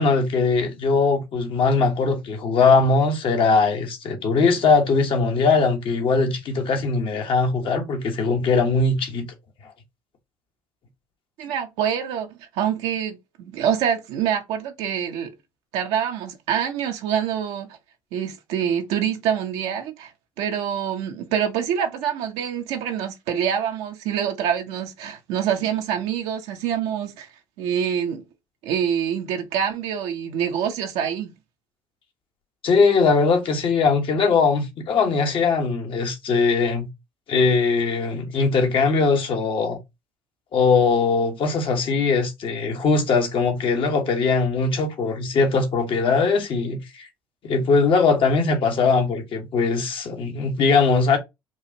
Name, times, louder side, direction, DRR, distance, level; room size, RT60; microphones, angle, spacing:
voice 1, 0.0-9.3 32.6-36.9 37.3-39.8 40.5-47.1 47.4-51.2, left 4 dB, 55° left, 1.2 m, -20 dB
voice 2, 11.4-15.3 15.7-17.8 18.1-20.1 20.4-27.3 27.6-28.2 28.6-31.3, right 8 dB, 75° right, 0.7 m, -26 dB
4.6 x 2.4 x 2.8 m
hypercardioid pair, 60°, 10 cm